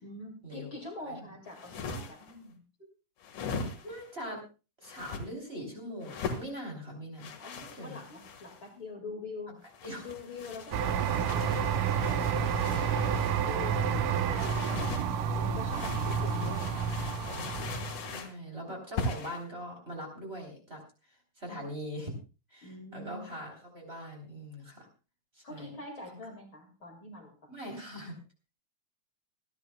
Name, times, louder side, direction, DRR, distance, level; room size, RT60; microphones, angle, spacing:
voice 1, 0.0-2.2 7.4-9.5 10.0-14.9 15.4-16.7 22.6-23.3 25.4-27.4, left 2 dB, 45° left, 2 dB, 2.5 m, -44 dB
sound 1, 1.5-2.3 3.2-4.1 4.8-5.2 6.0-6.5 7.2-8.6 9.6-13.4 14.3-15.1 15.7-18.4 19.0-19.4, left 3 dB, 70° left, 3.0 m, -39 dB
voice 2, 1.9-2.6 3.8-4.4 4.8-7.3 7.7-8.0 9.5-9.6 9.8-10.1 18.0-20.8 21.1-22.1 22.5-24.9 25.3-25.7 27.5-28.2, equal, 20° right, 1 dB, 3.5 m, -42 dB
sound 2, 10.7-18.2, right 7 dB, 80° right, 2.6 m, -30 dB
26.5 x 10.5 x 2.3 m, 0.32 s
omnidirectional pair, 3.7 m